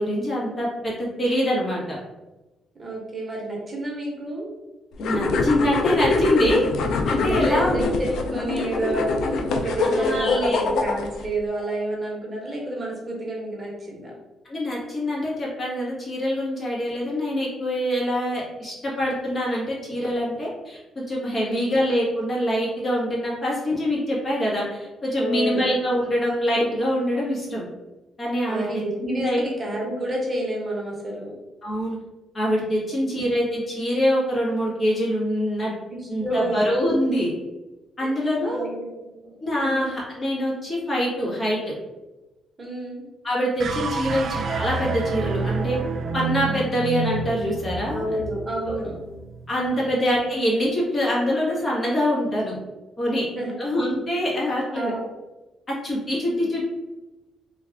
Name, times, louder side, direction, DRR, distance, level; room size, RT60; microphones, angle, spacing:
voice 1, 0.0-2.0 5.0-6.7 7.1-7.9 8.5-8.7 9.8-10.6 14.5-27.6 28.2-29.4 31.6-32.0 32.3-35.7 36.1-37.3 38.0-38.7 39.4-41.7 43.2-45.8 46.1-48.2 48.7-48.8 49.5-52.6 53.0-53.2 53.6-54.9 55.7-56.6, equal, 30° left, -5 dB, 1.4 m, -24 dB
voice 2, 2.8-4.5 7.2-14.2 21.3-21.7 25.2-25.7 28.5-31.3 32.8-32.9 35.9-36.6 38.0-38.1 38.4-40.0 42.6-43.0 47.9-49.0 49.8-50.1 53.3-53.5 54.4-55.0 56.4-56.5, right 1 dB, 30° right, -2 dB, 1.1 m, -30 dB
sound 1, 5.0-11.3, left 3 dB, 75° left, 0.4 m, -24 dB
sound 2, 43.6-50.0, right 4 dB, 55° right, 0.3 m, -29 dB
3.3 x 2.4 x 3.4 m, 1.1 s
cardioid pair, 90°, 0 cm